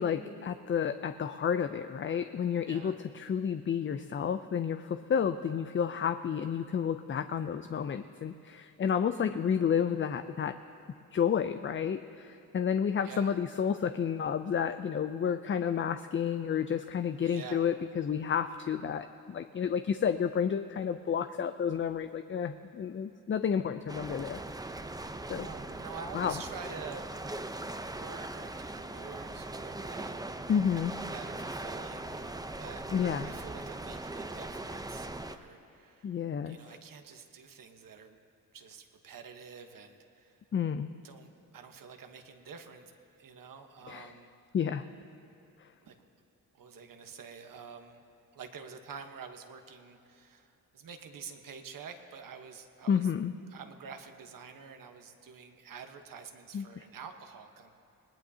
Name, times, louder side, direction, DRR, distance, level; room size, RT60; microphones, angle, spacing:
voice 1, 0.0-10.5 11.1-24.4 24.7-24.8 25.3-25.5 26.1-26.4 30.5-30.9 32.9-33.3 36.0-36.8 40.5-40.9 43.9-44.2 44.5-44.8 45.6-45.7 52.9-53.3 56.5-56.9, left 7 dB, 35° left, 10 dB, 0.5 m, -31 dB
voice 2, 2.6-3.0 13.0-13.4 17.2-17.7 25.3-27.1 27.9-30.2 31.1-32.8 33.2-36.2 36.4-38.2 38.5-40.4 41.0-42.9 43.2-44.3 45.8-46.0 46.5-48.0 48.3-53.1 53.5-57.7, right 6 dB, 65° right, 6 dB, 1.2 m, -48 dB
sound 1, 23.9-35.4, right 2 dB, 10° right, 0.7 m, -40 dB
19.5 x 18.0 x 2.8 m, 2.6 s
supercardioid pair, 60°, 36 cm